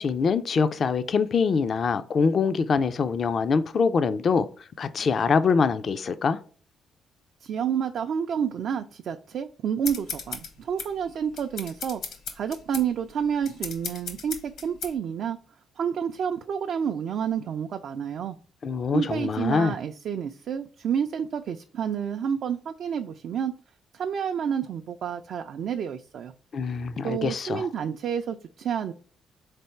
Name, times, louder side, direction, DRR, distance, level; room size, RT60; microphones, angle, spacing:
voice 1, 0.0-4.5 4.8-6.4 18.6-19.7 26.5-27.7, left 5 dB, 50° left, 0.3 m, -24 dB
voice 2, 7.4-12.0 12.3-15.4 15.8-18.4 18.9-23.5 23.9-26.3 27.0-28.9, right 8 dB, 65° right, 0.3 m, -29 dB
sound 1, 9.8-14.9, left 5 dB, 75° left, 1.1 m, -36 dB
3.8 x 3.3 x 4.2 m
cardioid pair, 90°, 0 cm